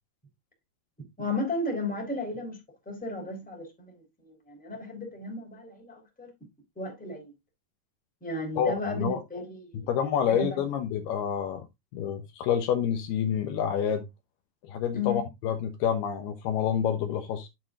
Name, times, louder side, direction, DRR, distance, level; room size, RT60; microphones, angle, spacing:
voice 1, 1.2-2.6 2.8-4.0 4.2-6.3 6.8-7.3 8.2-9.9 10.3-10.6 14.9-15.2, left 2 dB, ahead, 3.0 m, -34 dB
voice 2, 8.6-9.2 9.7-11.7 11.9-14.0 14.7-17.5, left 8 dB, 75° left, 2.8 m, -28 dB
10.5 x 7.6 x 2.5 m
omnidirectional pair, 4.9 m